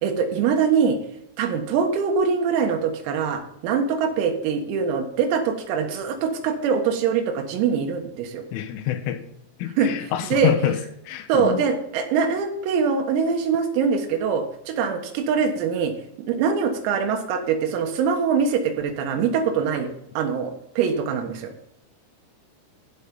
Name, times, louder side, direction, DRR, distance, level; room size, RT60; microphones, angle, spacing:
voice 1, 0.0-1.0 1.4-8.4 9.8-10.5 11.3-15.9 16.3-19.9 20.2-21.5, right 6 dB, 90° right, 5 dB, 4.2 m, -23 dB
voice 2, 8.5-9.2 9.6-10.8 11.1-11.6, left 11 dB, 80° left, 9 dB, 3.3 m, -26 dB
15.5 x 5.8 x 5.3 m, 0.73 s
omnidirectional pair, 5.9 m